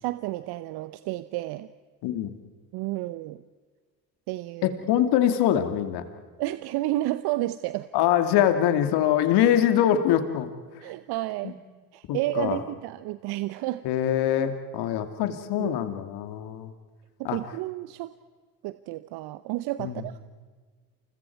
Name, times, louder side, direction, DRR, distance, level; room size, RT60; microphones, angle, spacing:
voice 1, 0.0-1.7 2.7-3.4 4.3-4.7 6.4-7.9 10.8-11.6 11.9-13.8 15.5-15.7 17.2-18.1 18.6-20.1, right 16 dB, 60° right, 13 dB, 0.9 m, -31 dB
voice 2, 2.0-2.4 4.6-6.0 7.9-10.5 11.4-11.5 12.1-12.6 13.8-16.7 17.2-17.4 19.8-20.0, left 10 dB, 60° left, 8 dB, 2.5 m, -24 dB
29.5 x 29.0 x 4.7 m, 1.5 s
hypercardioid pair, 60°, 44 cm